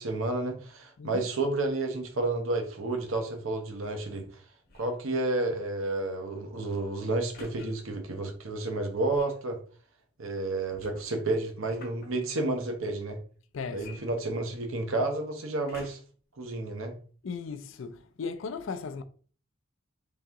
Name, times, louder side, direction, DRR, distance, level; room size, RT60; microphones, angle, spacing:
voice 1, 0.0-4.4 4.8-9.6 10.2-13.2 13.7-16.0 16.4-16.9, right 2 dB, 75° right, 0.8 m, -31 dB
sound 1, 4.6-5.0 7.3-7.7 9.1-9.4 10.8-12.1 13.8-14.7 15.7-16.2 16.9-17.0, left 2 dB, 45° left, 0.8 m, -50 dB
voice 2, 13.5-14.0 17.2-19.0, left 5 dB, 70° left, 0.4 m, -37 dB
3.9 x 2.8 x 3.5 m
head